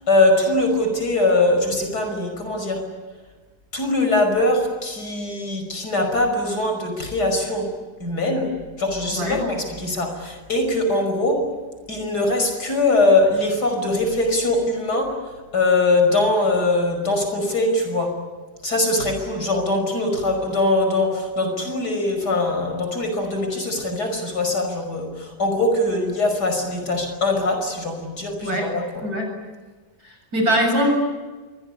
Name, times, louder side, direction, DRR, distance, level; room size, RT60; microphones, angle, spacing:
voice 1, 0.0-2.8 3.7-7.7 8.0-8.5 8.8-11.5 11.9-15.2 15.5-18.2 18.6-29.0, left 2 dB, 65° left, 5 dB, 6.2 m, -22 dB
voice 2, 28.4-28.8 29.0-29.3 30.0-31.0, equal, 60° right, 3 dB, 7.9 m, -22 dB
26.0 x 23.0 x 9.9 m, 1.3 s
omnidirectional pair, 1.9 m